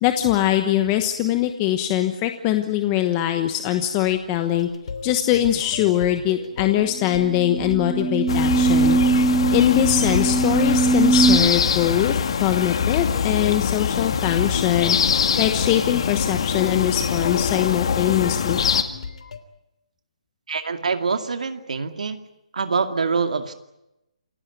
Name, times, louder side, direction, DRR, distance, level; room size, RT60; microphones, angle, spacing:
voice 1, 0.0-4.7 5.0-9.0 9.5-15.0 15.4-18.6, left 12 dB, 20° left, 7 dB, 1.1 m, -22 dB
sound 1, 4.5-19.4, left 4 dB, 65° left, 3.0 m, -36 dB
sound 2, 7.0-11.4, right 4 dB, ahead, 1.2 m, -21 dB
sound 3, 8.3-18.8, left 7 dB, 45° left, 2.1 m, -23 dB
voice 2, 20.5-22.2 22.5-23.5, right 5 dB, 75° right, 7 dB, 2.3 m, -25 dB
28.0 x 16.5 x 9.4 m, 0.89 s
hypercardioid pair, 170°, 4 cm